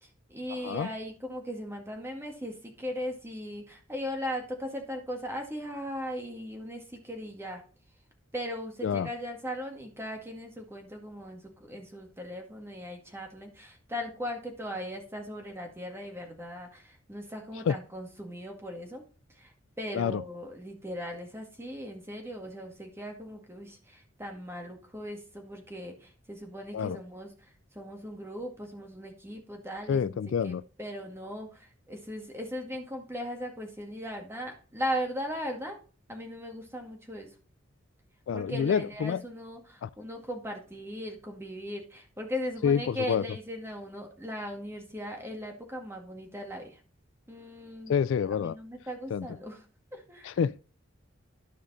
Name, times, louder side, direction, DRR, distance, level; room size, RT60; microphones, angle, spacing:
voice 1, 0.0-7.6 8.3-19.0 19.3-35.8 36.1-37.3 38.3-46.8 47.3-48.0 48.3-49.6 49.9-50.4, equal, 10° right, 1.9 m, -38 dB
voice 2, 29.9-30.6 38.3-39.2 39.8-39.9 42.6-43.2 47.9-48.5 49.1-49.3 50.2-50.6, left 7 dB, 65° left, 0.3 m, -27 dB
12.5 x 5.1 x 4.1 m
head